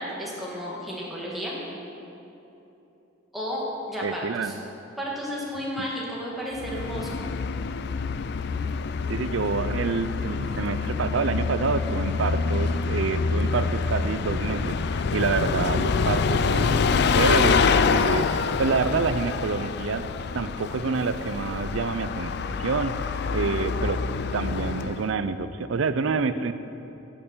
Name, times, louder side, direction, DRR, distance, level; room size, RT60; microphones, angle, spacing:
voice 1, 0.0-1.5 3.3-4.5 5.0-7.2 23.4-23.7, equal, ahead, -6 dB, 2.0 m, -33 dB
voice 2, 4.0-4.6 5.8-5.9 9.1-20.0 20.3-24.0 24.3-26.5, right 4 dB, 85° right, 12 dB, 0.5 m, -28 dB
Bus, 6.5-25.1, left 5 dB, 55° left, 0.4 m, -26 dB
11.0 x 6.7 x 6.8 m, 3.0 s
head